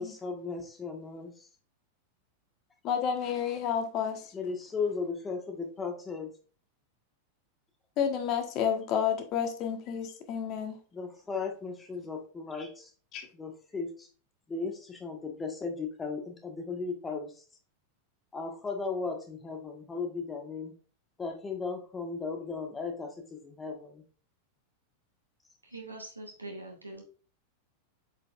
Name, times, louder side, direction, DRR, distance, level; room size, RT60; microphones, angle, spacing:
voice 1, 0.0-1.5 4.3-6.3 10.9-12.9 13.3-14.1 14.5-17.3 18.3-20.7 21.2-24.0, left 4 dB, 15° left, 1.5 m, -36 dB
voice 2, 2.8-4.3 8.0-10.8 13.1-13.3, left 8 dB, 40° left, 1.3 m, -30 dB
voice 3, 25.6-27.0, right 2 dB, 85° right, 1.9 m, -43 dB
7.9 x 5.2 x 2.4 m
figure-of-eight pair, 90°, 0 cm